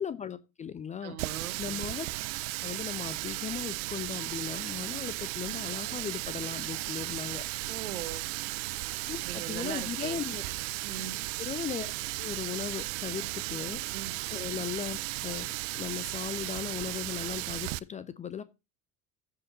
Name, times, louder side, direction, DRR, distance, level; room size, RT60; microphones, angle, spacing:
voice 1, 0.0-1.2 1.6-2.1 2.6-7.5 9.1-10.4 11.4-11.9 12.2-13.8 14.3-18.4, left 8 dB, 20° left, 0.4 m, -37 dB
voice 2, 1.0-1.6 7.7-8.3 9.2-10.2 10.8-11.2 13.2-13.3 13.9-14.1, right 9 dB, 75° right, 1.2 m, -40 dB
Water tap faucet, 1.2-17.8, right 22 dB, 55° right, 0.5 m, -35 dB
15.0 x 5.3 x 2.8 m
figure-of-eight pair, 60°, 44 cm